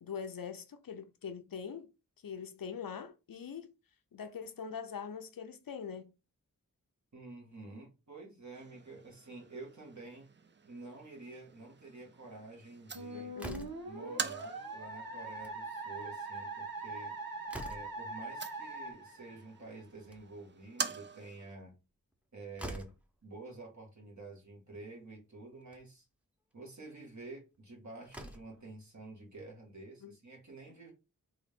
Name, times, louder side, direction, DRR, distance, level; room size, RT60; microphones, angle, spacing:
voice 1, 0.0-1.9 2.2-3.7 4.1-6.1 13.1-13.7 30.0-30.2 30.7-30.8, left 6 dB, 75° left, 0.6 m, -43 dB
voice 2, 7.1-10.3 10.6-13.3 13.8-17.1 17.6-21.8 22.3-23.0 23.2-26.0 26.5-30.9, right 3 dB, 55° right, 1.7 m, -49 dB
sound 1, 8.5-21.5, right 5 dB, 35° right, 0.5 m, -46 dB
Musical instrument, 12.9-19.8, right 2 dB, 85° right, 1.0 m, -42 dB
Slam, 13.4-14.0 15.2-15.6 15.9-16.0 16.3-16.4 16.9-18.1 19.8-20.5 22.1-22.2 22.6-23.1 24.2-24.3 24.7-24.8 25.6-25.8 27.5-27.6 28.0-28.6, equal, 5° right, 0.8 m, -46 dB
3.8 x 2.5 x 3.5 m
wide cardioid pair, 40°, 34 cm